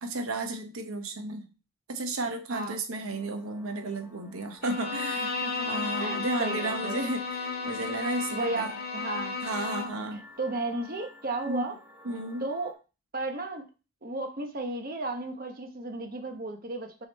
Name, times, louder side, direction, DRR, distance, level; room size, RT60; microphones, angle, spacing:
voice 1, 0.0-1.5 1.9-5.3 5.7-7.2 7.6-8.7 9.4-10.2 11.5-11.7 12.0-12.5, right 2 dB, 85° right, 5 dB, 0.9 m, -33 dB
sound 1, 3.1-12.7, equal, 10° right, 1.2 m, -53 dB
Bowed string instrument, 4.6-10.1, left 4 dB, 50° left, 1.1 m, -33 dB
voice 2, 5.2-7.0 8.3-9.4 10.1-11.7 12.4-12.7 13.1-13.7 14.0-17.1, right 2 dB, 45° right, 4 dB, 1.0 m, -34 dB
6.1 x 3.9 x 4.2 m, 0.32 s
head